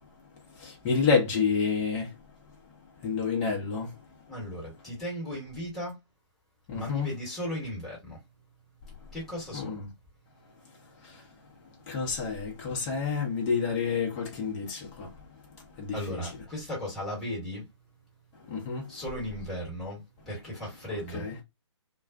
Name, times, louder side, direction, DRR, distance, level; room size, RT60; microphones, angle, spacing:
voice 1, 0.6-2.1 3.0-3.9 6.7-7.1 9.5-9.9 11.0-11.2 11.9-15.1 15.8-16.4 18.5-19.3 20.6-21.4, left 5 dB, 20° left, 0.8 m, -29 dB
voice 2, 4.3-6.0 6.7-8.2 9.1-9.8 15.9-17.6 18.9-21.3, equal, ahead, 1.3 m, -36 dB
2.4 x 2.1 x 2.4 m
figure-of-eight pair, 140°, 16 cm